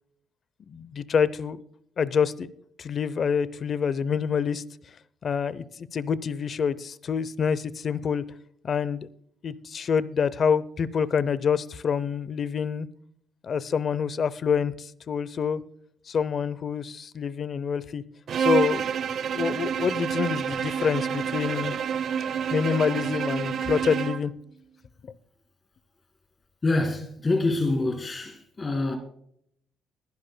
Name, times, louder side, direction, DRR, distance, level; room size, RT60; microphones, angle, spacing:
voice 1, 0.7-1.6 2.0-2.5 2.8-4.6 5.2-8.2 8.6-9.1 9.4-12.9 13.4-15.6 16.1-18.0 18.4-18.8 19.3-21.7 22.5-24.3 25.0-25.1, left 6 dB, 45° left, 0.6 m, -27 dB
Bowed string instrument, 18.3-24.3, right 7 dB, 55° right, 0.6 m, -28 dB
voice 2, 26.6-29.0, left 2 dB, 25° left, 1.9 m, -26 dB
22.0 x 10.5 x 2.2 m
cardioid pair, 130°, 0 cm